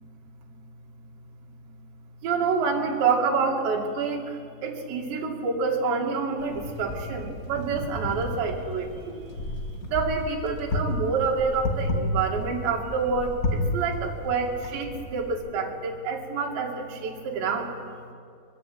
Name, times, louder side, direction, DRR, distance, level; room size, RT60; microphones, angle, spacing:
voice 1, 2.2-4.2 4.6-9.2 9.9-17.7, right 5 dB, 85° right, 0 dB, 4.7 m, -27 dB
Wind, 6.4-15.3, left 1 dB, 40° left, 1.2 m, -32 dB
25.5 x 21.0 x 8.8 m, 2.3 s
omnidirectional pair, 4.9 m